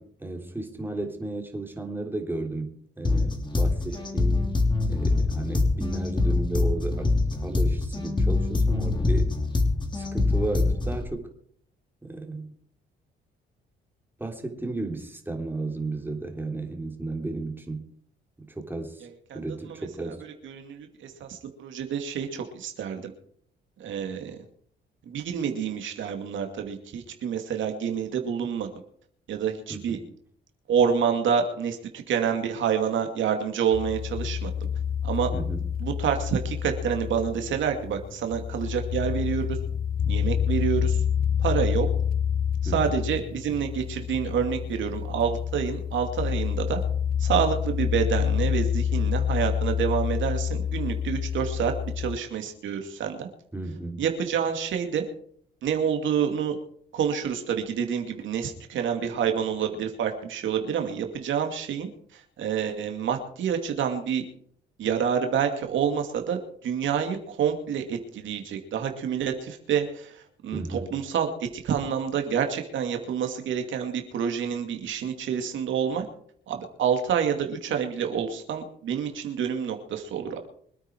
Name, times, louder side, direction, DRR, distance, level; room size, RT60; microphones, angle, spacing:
voice 1, 0.0-4.5 4.9-7.1 7.4-9.4 9.9-11.3 12.0-12.5 14.2-17.9 18.4-19.1 19.3-20.2 29.7-30.1 35.3-35.6 42.6-43.0 53.5-54.0 70.5-71.0, right 2 dB, 10° right, 3 dB, 3.5 m, -34 dB
sound 1, 3.0-11.0, left 3 dB, 25° left, 3.2 m, -24 dB
voice 2, 19.0-19.4 19.7-20.1 20.4-23.1 23.8-24.4 25.1-28.7 29.3-30.0 30.7-34.5 35.0-35.3 35.8-39.6 40.1-41.0 41.4-41.9 42.6-46.8 47.2-53.3 54.0-55.0 55.6-56.6 56.9-64.2 64.8-76.1 76.5-80.4, right 7 dB, 75° right, 5 dB, 2.6 m, -28 dB
sound 2, 33.7-52.2, left 8 dB, 45° left, 0.7 m, -28 dB
25.0 x 9.3 x 4.6 m, 0.62 s
cardioid pair, 90°, 20 cm